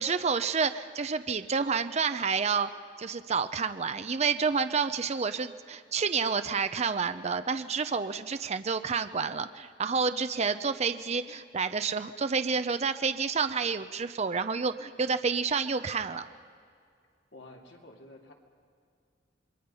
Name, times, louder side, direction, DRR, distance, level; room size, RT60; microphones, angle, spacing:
voice 1, 0.0-2.7 3.0-16.3, right 5 dB, 35° right, 10 dB, 0.6 m, -29 dB
voice 2, 17.3-18.3, left 2 dB, 75° left, 1 dB, 2.7 m, -50 dB
28.0 x 22.0 x 5.6 m, 2.2 s
head